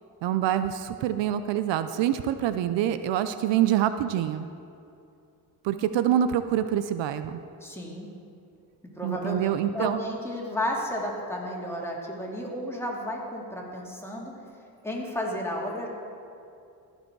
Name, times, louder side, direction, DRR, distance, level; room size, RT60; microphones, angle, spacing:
voice 1, 0.2-4.5 5.6-7.4 9.0-10.0, right 11 dB, 75° right, 11 dB, 0.5 m, -26 dB
voice 2, 7.6-8.1 9.0-14.3 14.8-15.9, left 1 dB, 5° left, -2 dB, 2.4 m, -32 dB
15.0 x 5.4 x 4.6 m, 2.6 s
supercardioid pair, 60°, 44 cm